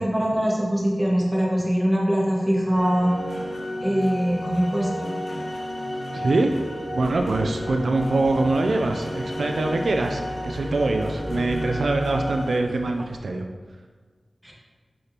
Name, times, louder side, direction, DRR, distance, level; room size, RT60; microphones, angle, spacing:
voice 1, 0.0-3.1 3.8-5.1 14.4-14.5, equal, 10° right, -4 dB, 1.9 m, -22 dB
sound 1, 2.7-12.6, equal, 55° left, 0.9 m, -32 dB
voice 2, 6.1-6.5 6.9-13.5, right 2 dB, 85° right, 4 dB, 0.4 m, -24 dB
sound 2, 7.0-13.2, right 1 dB, 60° right, 1.2 m, -39 dB
6.4 x 5.8 x 2.9 m, 1.5 s
cardioid pair, 45°, 0 cm